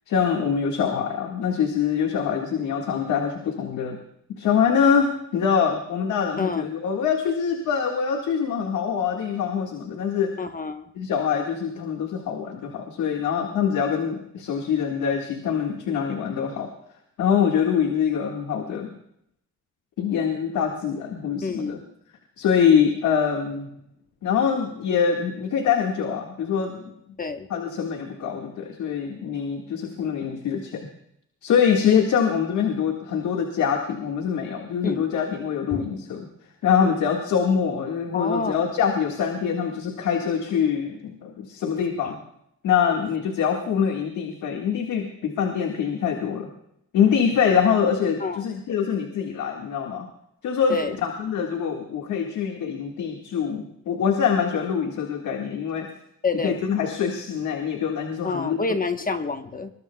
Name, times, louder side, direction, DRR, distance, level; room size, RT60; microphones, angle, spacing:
voice 1, 0.1-4.0 4.3-10.4 11.0-16.7 17.2-18.9 20.0-21.8 22.4-23.7 24.2-26.9 27.5-30.9 31.4-36.3 36.6-42.2 42.6-46.5 46.9-50.1 50.4-55.9 56.4-58.6, left 7 dB, 75° left, 2 dB, 1.8 m, -24 dB
voice 2, 10.4-10.8 21.4-21.8 27.2-27.5 34.8-35.0 35.7-35.8 38.1-38.7 48.2-48.4 50.7-51.0 56.2-56.6 58.2-59.7, left 4 dB, 30° left, 7 dB, 1.1 m, -28 dB
23.0 x 21.0 x 2.3 m, 0.76 s
cardioid pair, 90°, 30 cm